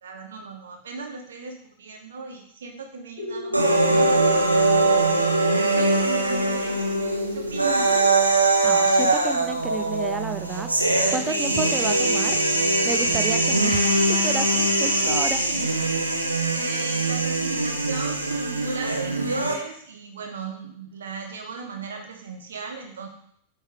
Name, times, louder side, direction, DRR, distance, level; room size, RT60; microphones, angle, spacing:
voice 1, 0.0-4.7 5.5-7.0 7.3-7.9 14.8-15.1 15.4-15.5 16.5-23.1, right 4 dB, 65° right, 2 dB, 1.2 m, -36 dB
sound 1, 3.2-8.1, left 2 dB, 55° left, 1.6 m, -31 dB
sound 2, 3.5-19.5, right 2 dB, 85° right, 0.7 m, -22 dB
voice 2, 8.6-12.4 12.8-15.7, right 4 dB, 15° right, 8 dB, 0.5 m, -32 dB
8.7 x 3.3 x 3.5 m, 0.66 s
figure-of-eight pair, 90°, 0 cm